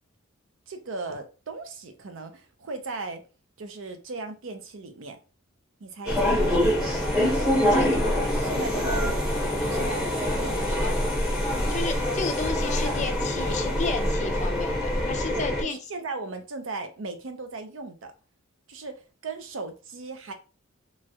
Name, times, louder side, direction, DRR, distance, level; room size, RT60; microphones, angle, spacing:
voice 1, 0.7-3.2 3.6-5.2 5.8-7.0 7.6-9.2 9.5-11.1 15.3-18.1 18.7-20.3, right 3 dB, 65° right, 7 dB, 0.6 m, -37 dB
sound 1, 6.1-15.6, left 1 dB, 5° right, 0.9 m, -25 dB
voice 2, 11.7-15.8, left 4 dB, 35° left, 6 dB, 0.4 m, -32 dB
3.0 x 2.3 x 2.7 m, 0.32 s
head